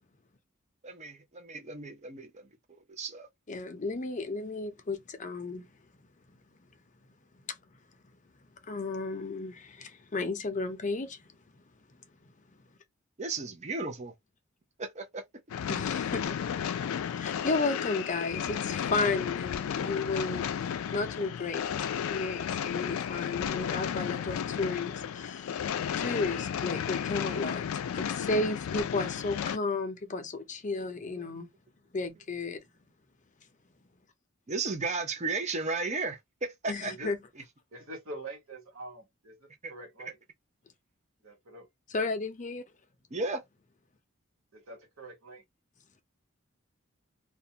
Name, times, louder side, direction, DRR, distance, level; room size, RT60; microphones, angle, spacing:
voice 1, 0.8-2.4 3.0-3.3 13.2-14.1 14.8-15.2 31.1-31.3 34.5-36.9 39.6-39.7 43.1-43.4, right 3 dB, 35° right, 0.6 m, -34 dB
voice 2, 3.5-5.7 8.7-11.2 15.7-16.4 17.2-20.5 20.9-21.6 22.1-25.5 25.9-27.6 27.9-31.5 31.9-32.6 36.7-37.2 41.9-42.6, left 3 dB, 35° left, 0.5 m, -33 dB
sound 1, 15.5-29.6, left 8 dB, 85° left, 0.3 m, -33 dB
voice 3, 36.8-37.1 37.7-40.2 41.2-41.7 44.5-45.4, right 2 dB, 85° right, 1.2 m, -45 dB
2.4 x 2.2 x 2.7 m
head